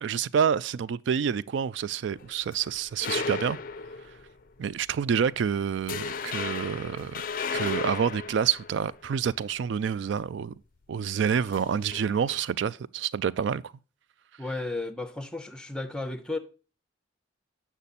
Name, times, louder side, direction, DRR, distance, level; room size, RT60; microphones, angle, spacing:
voice 1, 0.0-3.6 4.6-7.2 7.5-10.5 10.9-13.6, right 7 dB, 65° right, 0.3 m, -28 dB
sound 1, 2.1-4.4 4.8-5.0 5.4-5.5 5.9-9.4 11.4-12.4, left 5 dB, 45° left, 0.4 m, -35 dB
voice 2, 14.4-16.4, left 2 dB, 5° left, 0.6 m, -33 dB
8.3 x 6.0 x 4.1 m
head